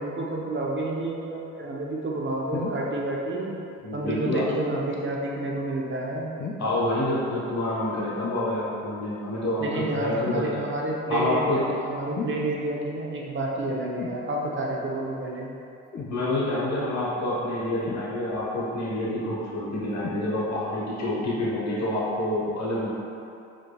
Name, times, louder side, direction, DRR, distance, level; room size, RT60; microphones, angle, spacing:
voice 1, 0.0-3.5 3.9-6.3 9.6-15.5, right 2 dB, 40° right, -3 dB, 0.9 m, -29 dB
sound 1, 2.5-2.9 4.3-4.5 6.4-6.8 8.2-8.5 10.3-10.5 12.2-12.4 14.0-14.2 15.9-16.2 17.9-18.4 20.0-20.2 21.1-21.2, left 5 dB, 30° left, 0.6 m, -34 dB
voice 2, 3.8-4.5 6.6-10.6 11.1-11.6 16.1-22.9, left 1 dB, 60° left, -7 dB, 1.3 m, -27 dB
4.8 x 4.4 x 2.3 m, 2.7 s
supercardioid pair, 60°, 32 cm